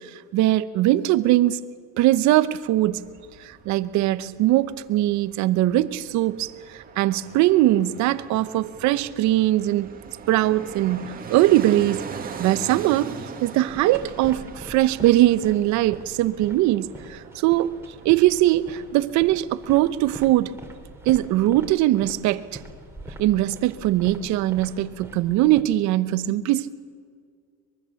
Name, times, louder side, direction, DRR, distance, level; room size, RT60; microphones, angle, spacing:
voice 1, 0.0-1.6 2.0-3.0 3.4-9.9 10.3-12.0 12.4-13.1 13.4-17.8 18.0-20.5 21.1-22.4 23.2-26.7, right 15 dB, 55° right, 14 dB, 0.9 m, -21 dB
Fixed-wing aircraft airplane, 2.5-19.4 19.7-19.8, right 6 dB, 25° right, 2.0 m, -41 dB
sound 1, 13.7-25.6, right 1 dB, 5° right, 2.6 m, -43 dB
23.5 x 22.5 x 7.1 m, 2.1 s
cardioid pair, 135°, 34 cm